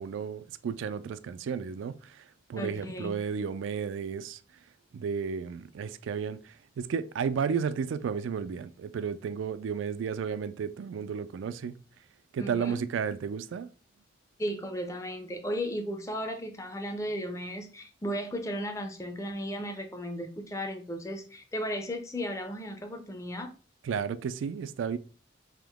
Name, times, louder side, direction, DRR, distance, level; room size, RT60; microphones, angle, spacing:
voice 1, 0.0-4.4 4.9-11.8 12.3-13.7 23.8-25.0, right 6 dB, 80° right, 0.3 m, -33 dB
voice 2, 2.6-3.1 12.4-12.8 14.4-23.5, equal, 15° left, 0.5 m, -35 dB
3.6 x 2.9 x 3.4 m
head